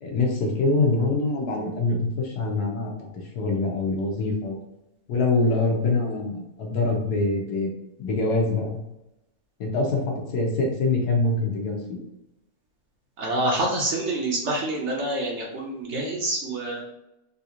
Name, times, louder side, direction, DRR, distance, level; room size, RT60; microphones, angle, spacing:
voice 1, 0.0-3.1 3.3-4.6 5.1-7.7 8.0-8.8 9.6-12.0, left 3 dB, 80° left, 0 dB, 1.4 m, -24 dB
voice 2, 13.2-16.8, right 1 dB, 60° right, -2 dB, 0.9 m, -27 dB
3.8 x 2.5 x 2.8 m, 0.90 s
omnidirectional pair, 1.7 m